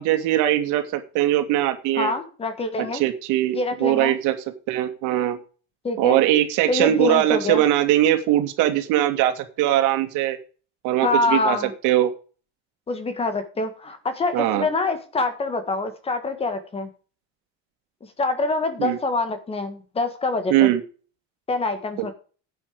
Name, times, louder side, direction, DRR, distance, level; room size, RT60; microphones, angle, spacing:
voice 1, 0.0-2.1 2.8-4.3 4.7-5.4 6.0-10.4 10.8-11.6 11.8-12.1 14.3-14.7 18.8-19.0 20.5-20.8, right 13 dB, 75° right, 7 dB, 2.4 m, -21 dB
voice 2, 1.9-3.0 3.5-4.2 5.8-6.2 6.7-7.6 11.0-11.7 12.9-16.9 18.2-20.7 21.5-22.1, left 3 dB, 20° left, 9 dB, 1.7 m, -25 dB
11.0 x 8.3 x 5.0 m, 0.37 s
cardioid pair, 175°, 31 cm